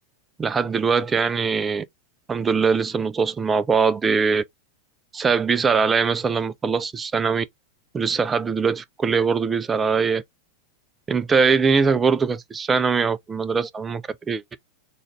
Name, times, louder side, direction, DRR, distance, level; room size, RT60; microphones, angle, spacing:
voice 1, 0.4-1.8 2.3-4.4 5.1-7.4 7.9-10.2 11.1-14.6, right 5 dB, 15° right, 0.3 m, -22 dB
4.0 x 2.5 x 3.0 m
figure-of-eight pair, 90°, 0 cm